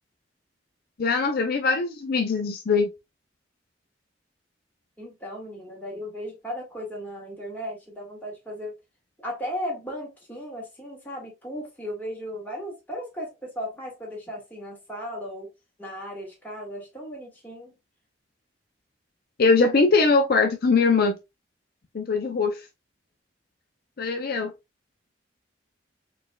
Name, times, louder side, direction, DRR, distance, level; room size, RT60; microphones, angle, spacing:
voice 1, 1.0-2.9 19.4-21.2 21.9-22.6 24.0-24.5, left 4 dB, 55° left, 0.5 m, -21 dB
voice 2, 5.0-8.7 9.2-15.5 15.8-17.8, equal, 10° left, 1.8 m, -36 dB
4.4 x 3.3 x 2.3 m
head